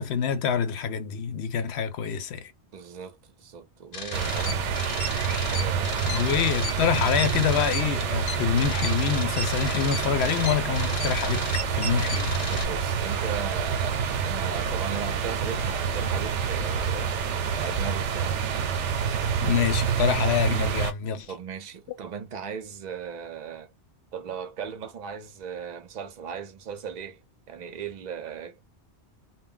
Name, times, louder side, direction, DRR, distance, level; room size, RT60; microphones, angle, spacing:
voice 1, 0.0-2.5 6.1-12.3 19.4-21.3, left 8 dB, 70° left, 0.8 m, -26 dB
voice 2, 2.7-5.0 5.5-6.3 12.5-17.1 17.5-18.6 21.3-23.7 24.1-27.2 27.5-28.6, right 7 dB, 50° right, 0.5 m, -37 dB
sound 1, 3.9-12.6, left 3 dB, 90° left, 1.1 m, -35 dB
sound 2, 4.1-20.9, right 6 dB, 90° right, 0.9 m, -27 dB
2.2 x 2.0 x 3.6 m
omnidirectional pair, 1.2 m